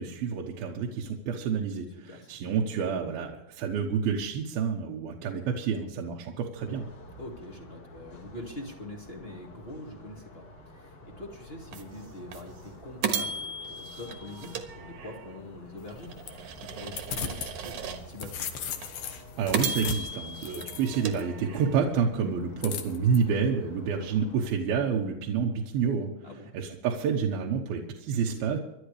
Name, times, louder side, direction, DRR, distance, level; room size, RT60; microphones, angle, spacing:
voice 1, 0.0-6.9 19.4-26.1 26.5-28.6, right 6 dB, 80° right, 0 dB, 3.0 m, -29 dB
sound 1, 6.6-24.5, left 1 dB, 45° left, 2.5 m, -50 dB
voice 2, 7.2-18.5 26.2-26.5, left 1 dB, 25° left, 0 dB, 1.4 m, -44 dB
sound 2, 11.7-11.8 12.3-12.4 13.0-15.4 15.9-18.3 18.8-18.9 19.5-21.9, right 5 dB, 65° right, 2.6 m, -35 dB
sound 3, 15.8-17.5 17.9-21.2 22.6-23.2, left 8 dB, 70° left, 2.8 m, -37 dB
25.5 x 11.5 x 3.4 m, 0.90 s
omnidirectional pair, 4.3 m